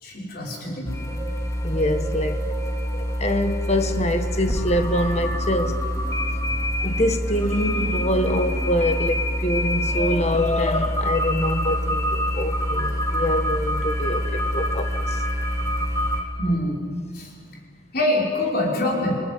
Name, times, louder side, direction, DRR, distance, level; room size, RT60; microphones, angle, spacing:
voice 1, 0.0-0.9 16.4-16.8 17.1-17.3 17.9-19.1, left 1 dB, 50° left, 6.1 m, -24 dB
sound 1, 0.8-16.2, equal, 15° left, 3.0 m, -25 dB
voice 2, 1.6-2.5 2.9-5.9 6.5-15.2 17.2-17.3, left 1 dB, 35° left, 1.5 m, -25 dB
28.5 x 19.5 x 9.4 m
head